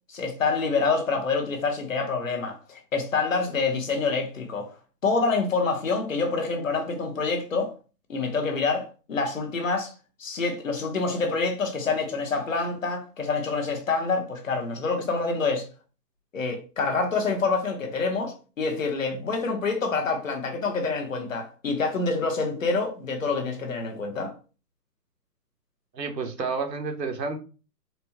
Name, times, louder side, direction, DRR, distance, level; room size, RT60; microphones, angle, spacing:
voice 1, 0.1-4.7 5.0-7.7 8.1-9.9 10.2-15.7 16.3-24.3, left 4 dB, 50° left, 0.9 m, -27 dB
voice 2, 25.9-27.4, right 4 dB, 80° right, 1.1 m, -30 dB
4.2 x 2.1 x 2.8 m
hypercardioid pair, 170°, 49 cm